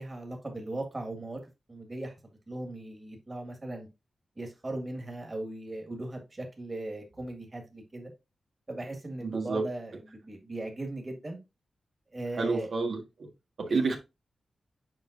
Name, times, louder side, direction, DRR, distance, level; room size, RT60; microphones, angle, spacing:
voice 1, 0.0-1.4 1.7-3.9 4.4-8.1 8.7-11.4 12.1-12.7 13.7-13.9, right 2 dB, 25° right, 1.8 m, -38 dB
voice 2, 9.2-9.7 12.4-13.3 13.6-14.0, right 4 dB, 75° right, 1.6 m, -29 dB
7.6 x 5.4 x 2.6 m
wide cardioid pair, 115°, 0 cm